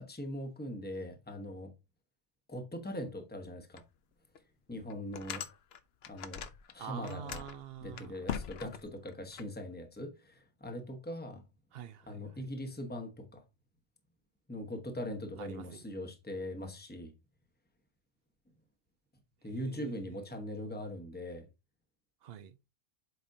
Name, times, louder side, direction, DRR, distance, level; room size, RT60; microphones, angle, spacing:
voice 1, 0.0-1.7 2.5-3.8 4.7-5.4 6.1-7.4 7.8-11.4 12.1-13.4 14.5-17.1 19.4-21.5, left 1 dB, 10° left, 1.1 m, -41 dB
sound 1, 3.8-3.9 4.3-4.4 4.9-6.7 7.0-9.4, left 8 dB, 65° left, 0.9 m, -41 dB
voice 2, 6.8-8.2 11.7-12.4 15.4-15.8 19.5-20.1 22.2-22.6, right 9 dB, 65° right, 0.7 m, -46 dB
7.9 x 5.1 x 2.7 m
omnidirectional pair, 1.2 m